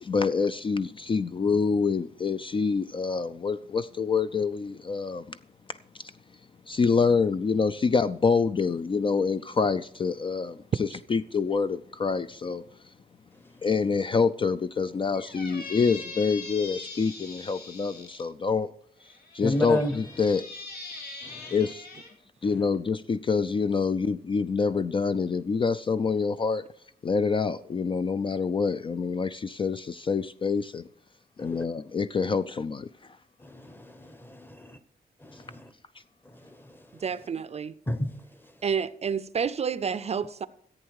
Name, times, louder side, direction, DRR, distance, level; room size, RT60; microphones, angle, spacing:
voice 1, 0.0-5.4 6.0-6.1 6.7-12.6 13.6-18.7 19.3-20.5 21.5-21.8 22.4-26.6 27.0-30.8 31.4-32.9, left 5 dB, 35° left, 0.4 m, -26 dB
Squeak, 15.1-18.2 19.0-22.1, left 3 dB, 80° left, 3.8 m, -42 dB
voice 2, 19.4-20.0 21.2-21.6 31.4-31.6 33.4-34.8 35.2-35.7 36.2-37.0 37.9-38.1, equal, 15° left, 0.9 m, -33 dB
voice 3, 37.0-37.7 38.6-40.5, right 6 dB, 40° right, 0.5 m, -29 dB
14.5 x 8.7 x 4.7 m
wide cardioid pair, 170°, 16 cm